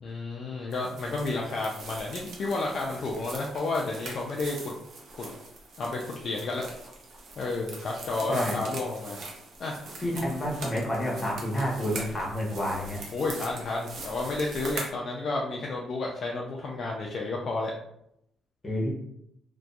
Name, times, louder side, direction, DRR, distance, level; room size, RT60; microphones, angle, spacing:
voice 1, 0.0-4.7 5.2-5.3 5.8-6.6 7.4-9.2 9.6-9.8 13.1-17.7, left 3 dB, 55° left, -2 dB, 0.4 m, -31 dB
sound 1, 0.7-14.9, right 3 dB, 65° right, 0.6 m, -42 dB
voice 2, 8.3-8.6 10.0-13.0 18.6-18.9, equal, 25° left, -3 dB, 1.0 m, -29 dB
2.6 x 2.2 x 2.3 m, 0.77 s
cardioid pair, 90°, 0 cm